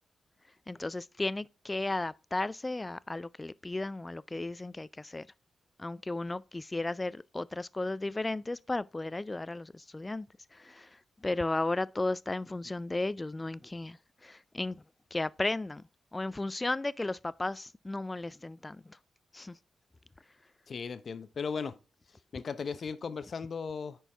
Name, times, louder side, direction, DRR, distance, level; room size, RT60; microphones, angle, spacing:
voice 1, 0.7-5.3 5.8-10.3 10.5-14.8 15.1-19.0 19.3-19.6, left 2 dB, 20° left, 0.3 m, -35 dB
voice 2, 20.7-21.7 22.3-24.0, left 5 dB, 55° left, 0.7 m, -36 dB
9.9 x 4.6 x 3.3 m
cardioid pair, 65°, 0 cm